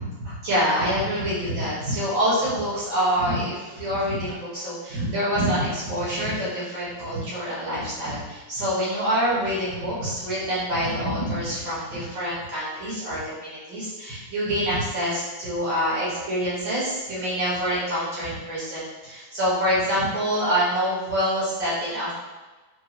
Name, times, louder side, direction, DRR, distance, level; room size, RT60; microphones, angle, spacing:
voice 1, 0.0-22.1, equal, 90° right, -10 dB, 2.4 m, -26 dB
4.7 x 2.5 x 3.0 m, 1.2 s
omnidirectional pair, 2.0 m